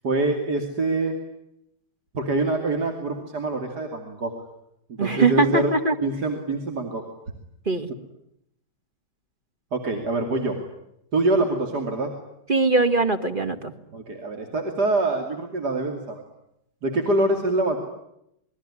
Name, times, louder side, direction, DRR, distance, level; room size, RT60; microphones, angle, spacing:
voice 1, 0.0-1.2 2.1-4.3 4.9-5.7 6.0-7.0 9.7-10.6 11.1-12.1 13.9-16.2 16.8-17.8, right 2 dB, 65° right, 3 dB, 3.3 m, -25 dB
voice 2, 5.0-5.9 7.7-7.9 12.5-13.7, right 3 dB, 30° right, 7 dB, 2.0 m, -21 dB
27.5 x 22.0 x 9.8 m, 0.80 s
omnidirectional pair, 1.8 m